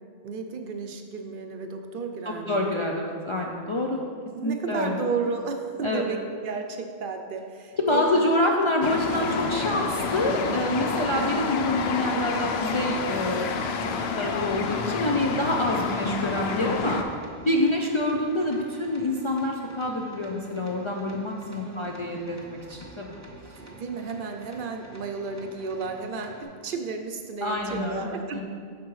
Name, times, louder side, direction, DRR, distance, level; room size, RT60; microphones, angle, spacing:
voice 1, 0.2-2.9 4.3-8.2 10.9-11.3 21.5-22.2 23.6-28.4, right 4 dB, 65° right, 5 dB, 0.7 m, -33 dB
voice 2, 2.3-4.0 4.4-5.0 5.8-6.0 7.8-17.0 17.5-23.2 27.4-28.4, left 1 dB, 45° left, -1 dB, 0.4 m, -27 dB
sound 1, 8.8-17.0, left 5 dB, 80° left, 0.8 m, -29 dB
sound 2, 12.7-26.4, right 2 dB, 20° right, 0.7 m, -49 dB
8.3 x 6.0 x 3.1 m, 2.2 s
omnidirectional pair, 1.1 m